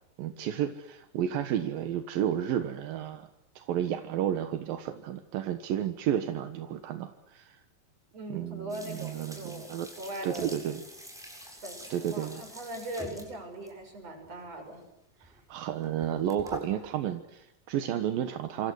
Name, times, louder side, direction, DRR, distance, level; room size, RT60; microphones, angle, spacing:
voice 1, 0.2-3.3 3.6-7.6 8.3-9.9 10.2-10.8 11.9-12.4 15.2-18.7, right 10 dB, 85° right, 8 dB, 3.1 m, -32 dB
voice 2, 8.1-10.5 11.6-14.9 15.2-15.4, right 1 dB, 45° right, 5 dB, 7.5 m, -40 dB
sound 1, 8.7-13.8 14.2-14.5 15.2-15.4 15.7-17.1, equal, ahead, 7.1 m, -46 dB
27.0 x 27.0 x 6.3 m, 0.89 s
omnidirectional pair, 4.0 m